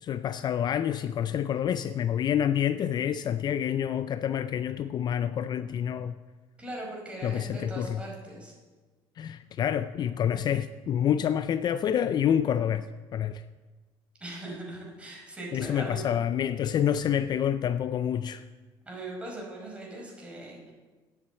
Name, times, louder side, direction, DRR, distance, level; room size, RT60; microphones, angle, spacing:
voice 1, 0.0-6.1 7.2-8.0 9.2-12.9 13.1-13.4 15.5-18.4, left 9 dB, 45° left, 0.4 m, -28 dB
voice 2, 6.6-8.5 14.2-16.0 18.8-20.7, right 1 dB, 10° right, 5.1 m, -40 dB
9.8 x 8.5 x 8.2 m
cardioid pair, 115°, 10 cm